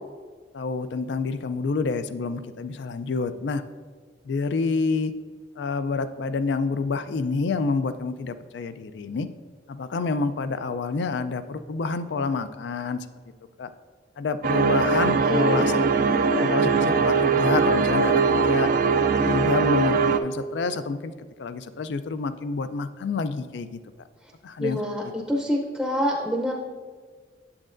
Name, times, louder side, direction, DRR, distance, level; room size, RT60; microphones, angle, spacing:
voice 1, 0.5-3.6 4.2-5.1 5.6-9.3 9.7-13.0 13.6-13.7 14.2-15.8 16.3-18.7 19.2-21.1 21.4-23.8 24.4-24.8 25.0-25.1, left 4 dB, 75° left, 12 dB, 0.4 m, -28 dB
sound 1, 14.4-20.2, right 4 dB, 50° right, 0.3 m, -21 dB
voice 2, 15.3-15.8 24.6-26.5, left 1 dB, ahead, -1 dB, 0.6 m, -26 dB
8.6 x 7.4 x 2.5 m, 1.5 s
head